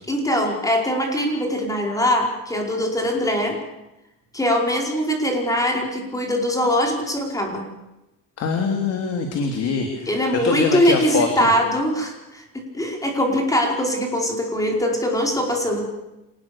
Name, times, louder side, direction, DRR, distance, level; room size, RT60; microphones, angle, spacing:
voice 1, 0.1-3.6 4.3-7.6 10.1-12.4 12.7-15.9, equal, 10° left, 2 dB, 5.0 m, -22 dB
voice 2, 8.4-11.5, left 5 dB, 50° left, 4 dB, 3.2 m, -23 dB
26.5 x 19.5 x 7.1 m, 0.94 s
cardioid pair, 140°, 32 cm